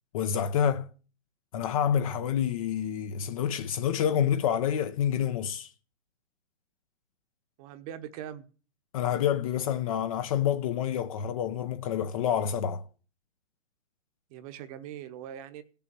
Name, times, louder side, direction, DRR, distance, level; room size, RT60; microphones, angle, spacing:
voice 1, 0.1-0.9 1.5-5.7 8.9-12.8, left 9 dB, 30° left, 0.7 m, -28 dB
voice 2, 7.6-8.4 14.3-15.6, right 10 dB, 30° right, 1.1 m, -41 dB
16.0 x 7.0 x 7.5 m
hypercardioid pair, 145°, 38 cm